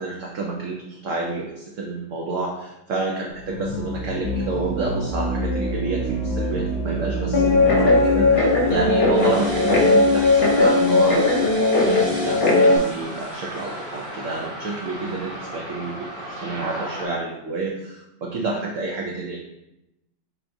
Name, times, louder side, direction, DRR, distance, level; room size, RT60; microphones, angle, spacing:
voice 1, 0.0-11.2 11.8-16.0 16.2-19.4, right 3 dB, 85° right, 0 dB, 0.6 m, -29 dB
sound 1, 3.4-10.5, right 1 dB, 80° left, 1.2 m, -28 dB
Guitar, 7.3-12.8, left 3 dB, 60° left, 0.5 m, -18 dB
sound 2, 9.1-17.1, right 1 dB, 35° right, 0.8 m, -35 dB
4.5 x 3.5 x 2.6 m, 0.90 s
omnidirectional pair, 1.9 m